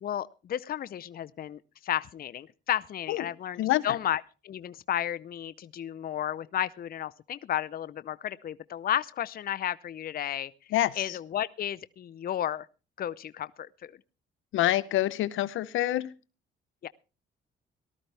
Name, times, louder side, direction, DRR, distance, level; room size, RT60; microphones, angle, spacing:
voice 1, 0.0-10.5 11.0-12.7 13.0-13.9 16.8-16.9, left 11 dB, 50° left, 0.6 m, -33 dB
voice 2, 3.6-4.0 10.7-11.2 14.5-16.1, left 14 dB, 80° left, 0.7 m, -27 dB
18.5 x 13.0 x 3.3 m
cardioid pair, 90°, 20 cm